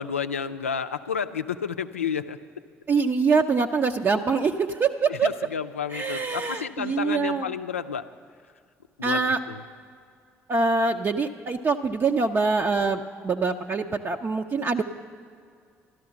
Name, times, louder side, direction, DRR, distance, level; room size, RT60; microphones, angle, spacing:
voice 1, 0.0-2.4 5.1-8.1 9.0-9.6, left 6 dB, 85° left, 10 dB, 0.4 m, -31 dB
voice 2, 2.9-5.3 5.9-7.5 9.0-9.4 10.5-14.8, right 4 dB, 35° right, 3 dB, 0.6 m, -24 dB
13.0 x 12.5 x 5.9 m, 2.2 s
figure-of-eight pair, 45°, 7 cm